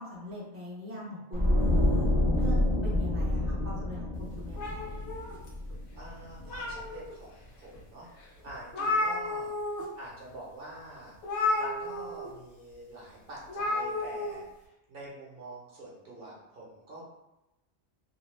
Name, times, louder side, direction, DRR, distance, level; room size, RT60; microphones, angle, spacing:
voice 1, 0.0-5.0, left 1 dB, 15° right, -6 dB, 0.5 m, -42 dB
sound 1, 1.3-6.4 6.7-6.9, left 1 dB, 35° left, 0.6 m, -28 dB
sound 2, 4.6-5.8 6.2-7.1 7.7-7.8 8.2-8.3 8.5-9.8 10.1-10.3 11.2-12.3 13.5-14.3, left 2 dB, 75° left, 0.9 m, -32 dB
voice 2, 5.9-8.1 8.4-17.0, right 1 dB, 55° right, -5 dB, 0.9 m, -46 dB
2.7 x 2.2 x 3.1 m, 0.94 s
omnidirectional pair, 1.2 m